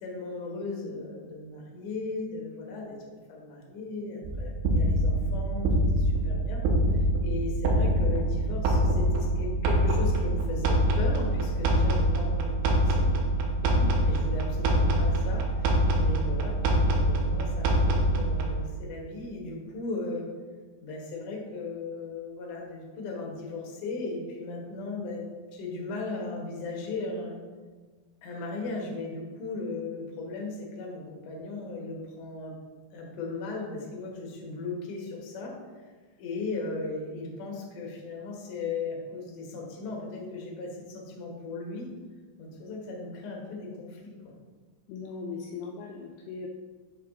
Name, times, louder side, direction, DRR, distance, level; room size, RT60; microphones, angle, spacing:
voice 1, 0.0-6.6 7.2-13.1 14.0-20.3 20.8-25.2 25.5-27.4 28.2-32.5 32.9-35.5 36.2-41.9 42.4-44.1, left 3 dB, 65° left, -2 dB, 2.3 m, -37 dB
sound 1, 4.2-18.6, right 1 dB, 75° right, 2.4 m, -25 dB
voice 2, 44.9-46.5, left 5 dB, 80° left, 0 dB, 2.4 m, -39 dB
7.3 x 4.7 x 3.6 m, 1.4 s
omnidirectional pair, 4.9 m